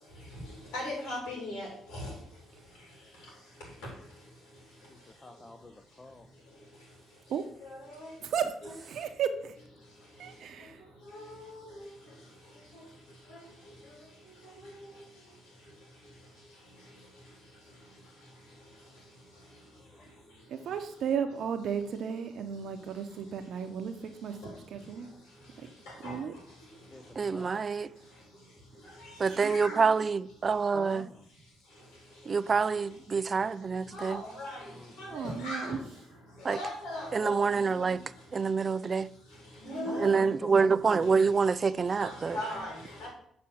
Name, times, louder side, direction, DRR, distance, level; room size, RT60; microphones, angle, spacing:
voice 1, 0.7-2.1 7.9-8.1 8.6-8.7 11.1-11.7 13.3-13.4 24.4-24.5 26.0-26.2 29.4-29.8 33.9-34.6 35.0-35.8 36.5-37.9 39.7-40.3 42.0-43.1, left 1 dB, 80° left, 2.9 m, -38 dB
voice 2, 4.9-6.3 19.7-20.3 26.9-27.7 30.7-31.3 34.7-35.2 39.9-41.1, left 2 dB, 20° left, 0.7 m, -47 dB
voice 3, 8.9-9.5 10.2-10.8 20.5-23.9 24.2-24.3 24.7-25.1 26.0-26.3 29.3-29.5 35.1-35.8 39.6-40.0, right 7 dB, 65° right, 0.8 m, -34 dB
voice 4, 27.2-27.9 29.2-31.1 32.3-34.2 36.4-36.6 37.1-38.0 38.3-39.1 40.0-42.4, right 5 dB, 40° right, 0.3 m, -27 dB
7.1 x 4.2 x 6.2 m
supercardioid pair, 70°, 0 cm